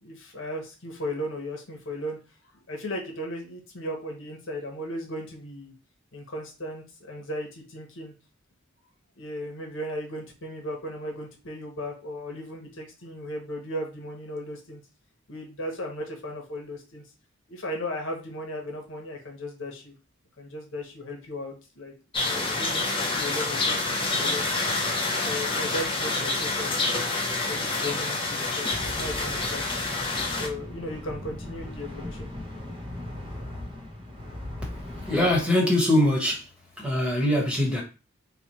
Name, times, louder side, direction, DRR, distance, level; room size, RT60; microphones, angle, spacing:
voice 1, 0.0-2.2 2.7-5.7 6.1-8.1 9.2-14.8 15.3-17.0 17.5-19.9 20.4-21.9 22.2-24.5 25.2-27.0 27.3-29.6 30.4-32.3, left 1 dB, 75° left, 1.1 m, -36 dB
sound 1, 22.1-30.5, left 3 dB, 25° left, 0.8 m, -27 dB
sound 2, 28.7-35.4, left 1 dB, 25° right, 1.0 m, -38 dB
voice 2, 35.1-36.4 36.8-37.8, left 1 dB, 5° right, 1.3 m, -22 dB
3.3 x 2.3 x 4.2 m
head